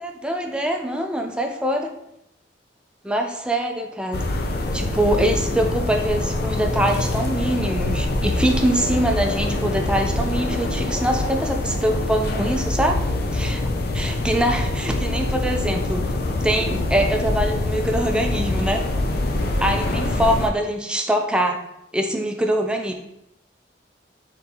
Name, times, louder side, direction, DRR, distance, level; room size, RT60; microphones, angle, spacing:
voice 1, 0.0-1.9 3.0-4.2 4.7-13.0 13.3-13.6 13.9-16.0 16.4-18.8 19.6-21.6 21.9-22.9, right 1 dB, 5° right, 3 dB, 0.4 m, -23 dB
sound 1, 4.1-20.5, left 2 dB, 60° left, 0.5 m, -24 dB
4.2 x 3.6 x 2.8 m, 0.79 s
head